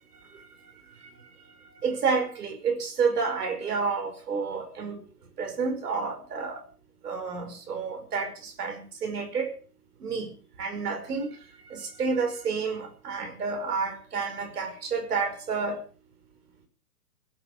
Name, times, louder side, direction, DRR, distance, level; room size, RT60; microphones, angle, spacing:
voice 1, 1.8-5.0 5.4-6.6 7.0-9.5 10.0-11.3 11.7-15.8, right 5 dB, 75° right, 5.5 m, -30 dB
17.0 x 9.7 x 6.6 m
hypercardioid pair, 130°, 47 cm